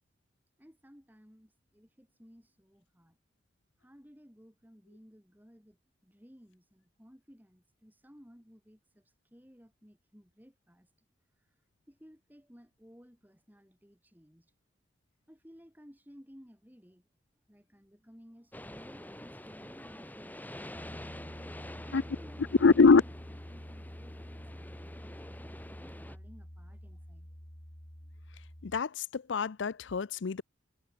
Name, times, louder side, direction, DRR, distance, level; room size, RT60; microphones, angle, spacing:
voice 1, 0.6-3.2 3.8-10.9 11.4-11.5 11.9-14.5 15.3-17.1 17.5-20.9 21.4-27.3 28.0-28.2, equal, 10° right, 6.3 m, -57 dB
sound 1, 18.5-26.2, left 1 dB, 10° left, 6.8 m, -47 dB
Piano, 20.7-28.8, equal, 30° left, 3.5 m, -48 dB
voice 2, 22.6-23.0 28.6-30.4, left 4 dB, 80° left, 0.6 m, -24 dB
head